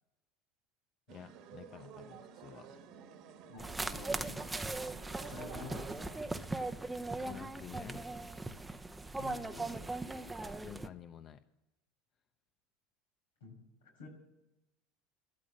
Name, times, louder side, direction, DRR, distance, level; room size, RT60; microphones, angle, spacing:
voice 1, 1.1-2.8 7.2-8.1 10.6-11.4, left 9 dB, 45° left, 10 dB, 0.7 m, -50 dB
sound 1, 1.1-6.5, right 7 dB, 60° right, 1.6 m, -52 dB
voice 2, 3.5-4.3 5.2-6.2 9.2-9.8 13.4-13.6 14.0-14.1, left 4 dB, 90° left, 0 dB, 5.6 m, -49 dB
sound 2, 3.6-10.9, right 2 dB, 10° right, 0.8 m, -39 dB
13.0 x 13.0 x 7.5 m, 0.95 s
hypercardioid pair, 90°, 0 cm